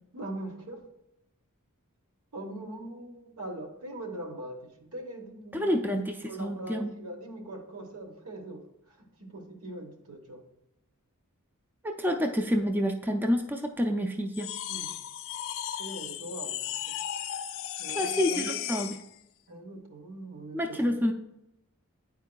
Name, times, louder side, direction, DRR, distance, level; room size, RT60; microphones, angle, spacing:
voice 1, 0.1-0.8 2.3-5.8 6.2-10.4 14.7-15.0 15.8-17.0 17.8-18.6 19.5-20.9, right 1 dB, 75° right, 3 dB, 1.1 m, -41 dB
voice 2, 5.5-6.9 11.8-14.5 17.9-18.9 20.5-21.1, equal, 10° right, 4 dB, 0.4 m, -28 dB
sound 1, 14.3-19.1, left 11 dB, 60° left, 0.3 m, -35 dB
9.5 x 4.5 x 2.2 m, 0.85 s
head